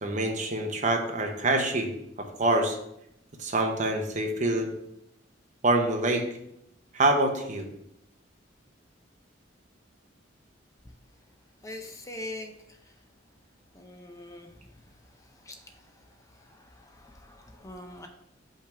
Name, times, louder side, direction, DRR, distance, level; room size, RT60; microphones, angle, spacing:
voice 1, 0.0-1.9 2.4-2.8 3.4-4.7 5.6-6.3 6.9-7.7, right 2 dB, 40° right, 3 dB, 0.9 m, -25 dB
voice 2, 11.6-12.5 13.7-14.5 15.4-15.6 16.4-18.1, left 1 dB, 15° left, 4 dB, 0.6 m, -42 dB
5.6 x 3.5 x 5.7 m, 0.79 s
head